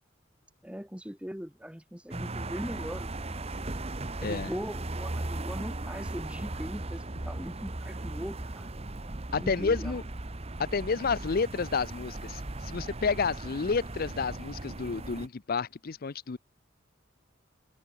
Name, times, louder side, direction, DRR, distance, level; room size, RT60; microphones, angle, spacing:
voice 1, 0.6-8.7 9.3-10.0, equal, 5° right, 1.6 m, -40 dB
sound 1, 2.1-15.3, right 2 dB, 30° right, 1.2 m, -37 dB
voice 2, 4.2-4.5 9.3-10.0 10.6-16.4, left 5 dB, 50° left, 0.6 m, -30 dB
head